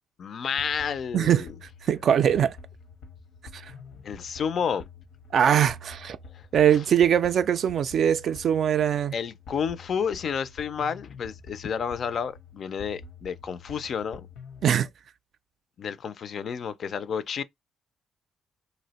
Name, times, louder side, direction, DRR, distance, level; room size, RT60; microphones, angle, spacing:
voice 1, 0.2-1.5 4.0-4.8 6.3-6.5 6.7-6.8 9.1-14.3 15.8-17.4, left 7 dB, 55° left, 0.3 m, -30 dB
sound 1, 0.6-14.8, left 4 dB, 90° left, 0.7 m, -47 dB
voice 2, 1.1-1.5 1.9-2.6 3.5-3.6 5.3-6.2 6.5-9.1 14.6-14.9, right 9 dB, 60° right, 0.3 m, -22 dB
2.7 x 2.0 x 3.9 m
cardioid pair, 90°, 0 cm